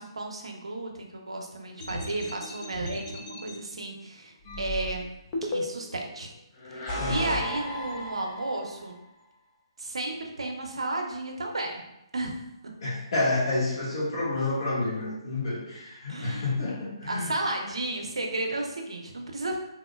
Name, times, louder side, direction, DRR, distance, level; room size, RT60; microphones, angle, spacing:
voice 1, 0.0-5.1 5.4-6.3 6.7-9.0 9.8-11.8 12.1-12.3 16.1-16.5 17.0-19.6, right 2 dB, 90° right, 1 dB, 0.6 m, -33 dB
sound 1, 1.8-3.5 4.5-6.0 6.6-8.8, left 1 dB, 20° left, 0.4 m, -35 dB
voice 2, 7.0-7.4 12.8-17.3, left 2 dB, 55° left, -7 dB, 1.3 m, -29 dB
3.4 x 2.1 x 2.2 m, 0.86 s
hypercardioid pair, 155°, 3 cm